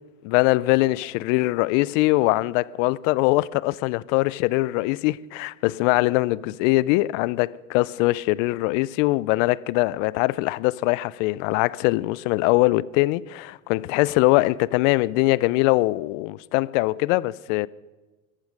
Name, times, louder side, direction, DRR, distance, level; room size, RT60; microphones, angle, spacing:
voice 1, 0.2-17.7, left 20 dB, 70° left, 0.5 m, -22 dB
14.0 x 13.0 x 6.4 m
supercardioid pair, 110°, 39 cm